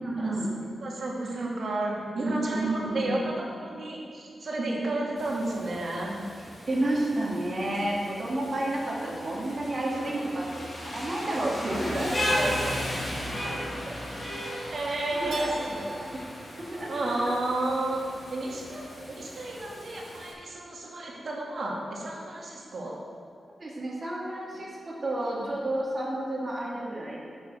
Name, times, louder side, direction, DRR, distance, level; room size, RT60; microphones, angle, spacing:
voice 1, 0.0-0.5 2.2-3.3 6.7-12.1 12.3-12.5 13.9-14.0 15.2-16.2 16.7-17.3 23.6-27.2, right 1 dB, 35° right, -4 dB, 2.3 m, -31 dB
voice 2, 0.8-6.2 12.4-13.0 13.4-13.6 14.0-14.1 14.7-16.1 16.9-18.0 18.3-23.0, right 2 dB, 55° right, -3 dB, 2.3 m, -32 dB
Rain, 5.2-20.3, equal, 25° left, 3.0 m, -36 dB
Keyboard (musical), 15.3-18.1, right 2 dB, 70° right, 0.8 m, -42 dB
10.5 x 6.3 x 7.6 m, 2.4 s
wide cardioid pair, 160°, 0 cm